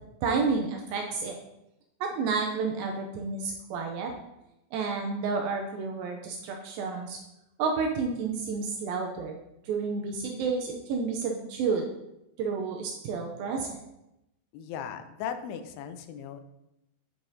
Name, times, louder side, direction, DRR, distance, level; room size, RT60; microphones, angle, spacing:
voice 1, 0.2-1.4 2.0-4.1 4.7-7.2 7.6-9.4 9.7-11.8 12.4-13.8, right 4 dB, 85° right, 2 dB, 2.1 m, -30 dB
voice 2, 14.5-16.4, left 8 dB, 80° left, 8 dB, 2.5 m, -37 dB
8.8 x 4.7 x 2.7 m, 0.88 s
omnidirectional pair, 4.8 m